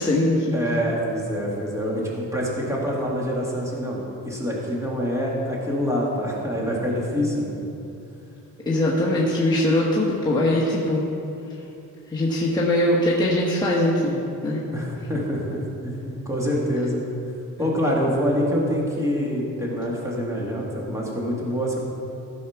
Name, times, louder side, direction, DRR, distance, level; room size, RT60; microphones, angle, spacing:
voice 1, 0.0-0.8 8.6-11.1 12.1-14.6, left 1 dB, 15° left, -6 dB, 1.3 m, -21 dB
voice 2, 0.5-7.6 14.7-15.6 15.8-17.0 17.6-21.8, equal, 10° right, -4 dB, 2.2 m, -26 dB
14.5 x 5.6 x 5.9 m, 2.8 s
cardioid pair, 130°, 33 cm